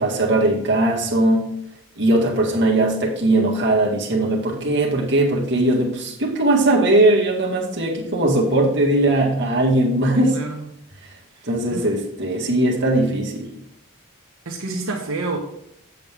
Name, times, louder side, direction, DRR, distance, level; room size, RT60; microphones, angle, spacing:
voice 1, 0.0-1.5 2.0-10.4 11.4-13.6, right 1 dB, 55° right, -2 dB, 1.8 m, -19 dB
voice 2, 10.1-10.7 11.4-11.9 14.4-15.4, right 3 dB, 80° right, -2 dB, 1.2 m, -29 dB
7.6 x 7.3 x 3.5 m, 0.77 s
head